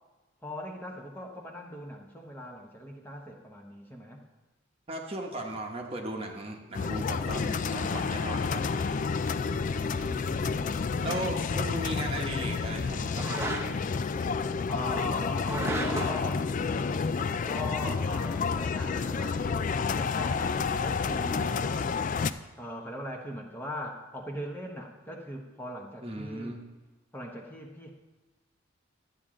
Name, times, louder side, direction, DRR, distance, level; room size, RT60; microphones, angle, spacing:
voice 1, 0.4-4.2 9.7-11.2 14.7-16.5 17.4-21.9 22.6-26.5 27.1-27.9, equal, 10° left, 0 dB, 1.0 m, -40 dB
voice 2, 4.9-8.6 11.0-13.2 26.0-26.6, right 1 dB, 30° right, 1 dB, 1.0 m, -36 dB
sound 1, 6.7-22.3, left 5 dB, 40° left, 0.3 m, -30 dB
sound 2, 10.0-10.2 13.1-13.9 15.4-16.3, right 2 dB, 15° right, 0.7 m, -34 dB
12.0 x 8.7 x 3.8 m, 1.2 s
head